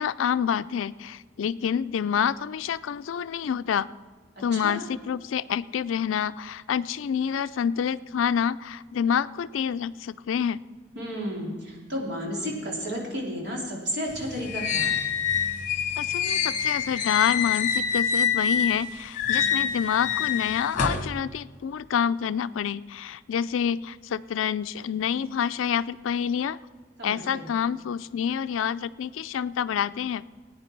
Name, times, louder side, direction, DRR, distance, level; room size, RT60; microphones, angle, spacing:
voice 1, 0.0-3.9 4.4-10.6 16.0-26.6 27.0-30.2, left 8 dB, 85° left, 15 dB, 0.4 m, -27 dB
voice 2, 4.5-4.8 10.9-15.0 27.0-27.5, equal, 55° right, -2 dB, 3.2 m, -32 dB
sound 1, 14.1-18.8 19.2-21.1, left 7 dB, 40° left, 1.1 m, -26 dB
18.5 x 9.5 x 4.5 m, 1.5 s
head